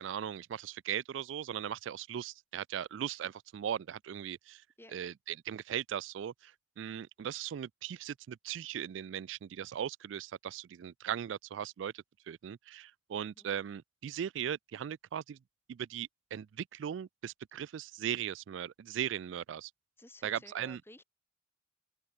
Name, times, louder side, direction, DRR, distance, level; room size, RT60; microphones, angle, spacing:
voice 1, 0.0-4.6 4.9-15.4 15.7-19.7 20.2-20.8, right 9 dB, 85° right, 0.3 m, -38 dB
voice 2, 20.0-21.0, left 1 dB, 15° left, 2.9 m, -54 dB
open air
head